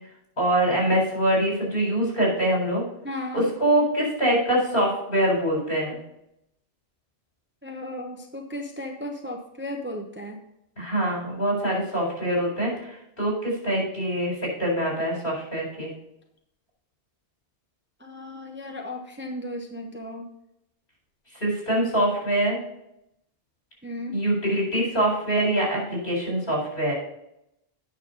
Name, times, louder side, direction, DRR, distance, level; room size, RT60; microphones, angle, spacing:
voice 1, 0.4-2.8 3.3-6.0 10.8-15.9 21.4-22.6 24.1-26.9, right 1 dB, 55° left, -2 dB, 4.5 m, -24 dB
voice 2, 3.0-3.4 7.6-10.4 18.0-20.3 23.8-24.2, left 1 dB, 10° right, 2 dB, 0.8 m, -35 dB
9.2 x 5.9 x 5.4 m, 0.80 s
omnidirectional pair, 1.1 m